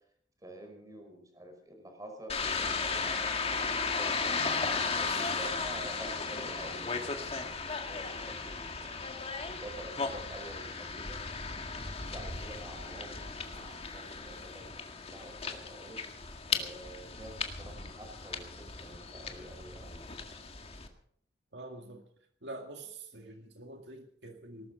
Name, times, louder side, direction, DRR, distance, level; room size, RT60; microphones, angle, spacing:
voice 1, 0.4-4.5 5.0-9.0 9.4-11.2 12.1-16.1 16.5-20.2, right 1 dB, 20° right, 3 dB, 5.2 m, -48 dB
sound 1, 2.3-20.9, left 4 dB, 35° left, 1.9 m, -36 dB
voice 2, 21.5-22.1 22.4-24.7, right 2 dB, 75° right, 3 dB, 2.1 m, -46 dB
19.0 x 12.5 x 5.3 m, 0.64 s
head